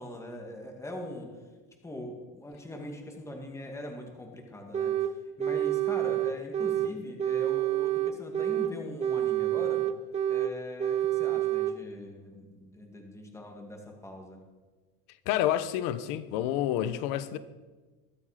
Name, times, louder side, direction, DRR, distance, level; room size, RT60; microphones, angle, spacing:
voice 1, 0.0-1.3 1.8-9.9 10.3-14.4, left 1 dB, 10° left, 2.3 m, -42 dB
sound 1, 4.7-5.1 5.4-6.9 7.2-8.7 9.0-10.5 10.8-11.7, right 12 dB, 20° right, 0.7 m, -28 dB
voice 2, 15.3-17.4, left 12 dB, 75° left, 1.2 m, -29 dB
21.5 x 13.0 x 5.2 m
cardioid pair, 170°, 33 cm